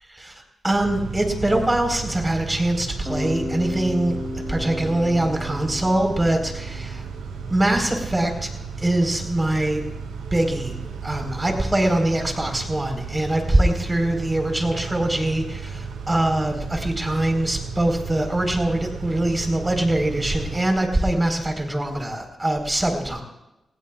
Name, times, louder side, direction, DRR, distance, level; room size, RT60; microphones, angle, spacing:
voice 1, 0.6-4.2 4.5-7.0 7.5-8.5 8.8-9.9 10.3-10.8 11.0-23.2, right 1 dB, 20° right, 3 dB, 4.5 m, -23 dB
Car / Idling / Accelerating revving vroom, 0.7-20.6, right 5 dB, 90° right, 5.7 m, -34 dB
Bass guitar, 3.1-7.0, left 2 dB, 10° left, 4.2 m, -33 dB
26.5 x 20.5 x 2.5 m, 0.92 s
cardioid pair, 55°, 0 cm